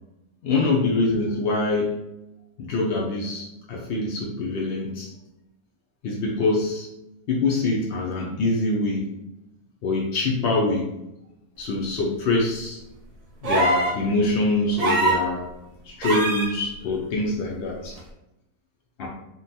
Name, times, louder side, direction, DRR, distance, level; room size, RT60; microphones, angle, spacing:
voice 1, 0.4-2.0 2.6-5.1 6.0-6.9 7.3-9.1 9.8-10.9 11.6-12.8 13.4-15.5 15.9-18.0 19.0-19.1, left 2 dB, 65° left, -2 dB, 0.6 m, -24 dB
sound 1, 13.4-14.0 14.8-15.3 16.0-16.5 18.0-18.1, right 2 dB, 55° right, 0.4 m, -22 dB
3.8 x 2.3 x 2.6 m, 0.91 s
omnidirectional pair, 1.6 m